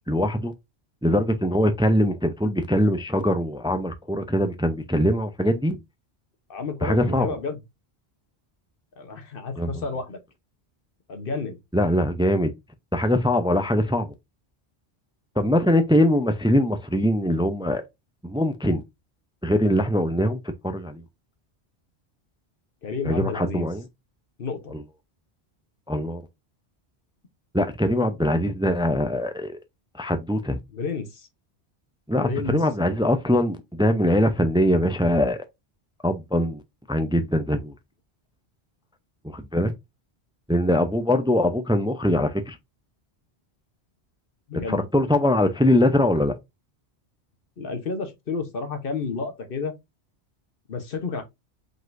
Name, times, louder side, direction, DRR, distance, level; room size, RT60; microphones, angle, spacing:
voice 1, 0.1-0.5 1.0-5.8 6.8-7.3 9.6-9.8 11.7-12.5 12.9-14.1 15.4-17.8 18.2-18.8 19.4-21.0 23.0-23.8 24.7-24.8 25.9-26.2 27.5-29.6 29.9-30.6 32.1-35.4 36.0-36.6 36.9-37.7 39.2-39.7 40.5-42.6 44.7-46.3, left 1 dB, 10° right, 0.3 m, -22 dB
voice 2, 6.5-7.6 9.0-10.2 11.1-11.6 22.8-23.7 24.4-24.7 30.7-31.3 32.1-32.6 44.5-44.9 47.6-49.7 50.7-51.2, left 4 dB, 60° left, 1.2 m, -31 dB
5.0 x 4.0 x 2.5 m
omnidirectional pair, 1.1 m